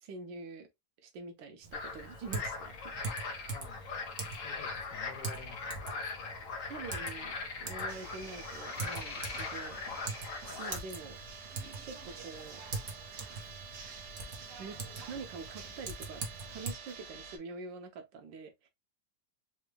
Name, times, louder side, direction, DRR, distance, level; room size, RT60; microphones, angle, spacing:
voice 1, 0.0-0.7 1.0-3.1 6.7-9.8 10.6-11.2 11.6-12.6 14.6-14.8 15.1-18.7, right 4 dB, 85° right, 1.5 m, -46 dB
Typing, 1.6-16.7, right 4 dB, 50° right, 1.1 m, -44 dB
sound 1, 1.7-10.8, left 4 dB, 55° left, 1.0 m, -40 dB
voice 2, 3.5-3.8 4.4-6.4 14.7-14.9, left 7 dB, 80° left, 1.5 m, -51 dB
sound 2, 7.9-17.4, right 5 dB, 70° right, 1.4 m, -48 dB
4.0 x 2.2 x 3.1 m
omnidirectional pair, 1.9 m